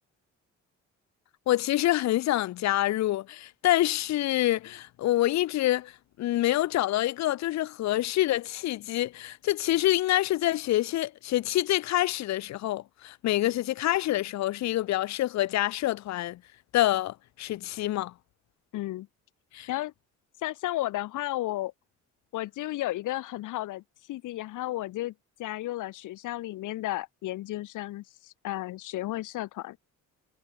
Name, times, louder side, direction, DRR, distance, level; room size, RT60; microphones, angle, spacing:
voice 1, 1.5-5.9 6.2-16.4 16.7-18.1 19.5-19.7, left 15 dB, 65° left, 0.6 m, -26 dB
voice 2, 18.7-19.1 19.7-19.9 20.4-21.7 22.3-23.8 24.1-25.1 25.4-29.8, left 16 dB, 85° left, 1.6 m, -33 dB
cardioid pair, 90°, 30 cm